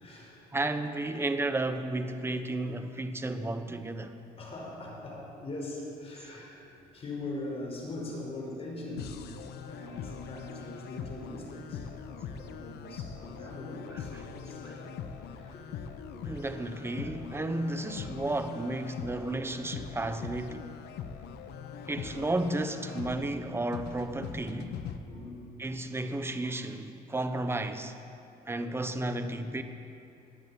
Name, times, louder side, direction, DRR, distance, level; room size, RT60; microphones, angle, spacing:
voice 1, 0.0-0.6 4.4-9.2 9.7-15.7 16.0-16.2 21.0-21.1 25.1-25.5 28.2-28.3, left 2 dB, 35° left, 4.8 m, -42 dB
voice 2, 0.5-4.2 16.3-20.7 21.9-24.7 25.6-27.9 28.5-29.6, right 2 dB, 15° right, 1.0 m, -33 dB
sound 1, 9.0-25.0, left 7 dB, 75° left, 0.9 m, -42 dB
21.0 x 7.8 x 8.7 m
cardioid pair, 110°, 17 cm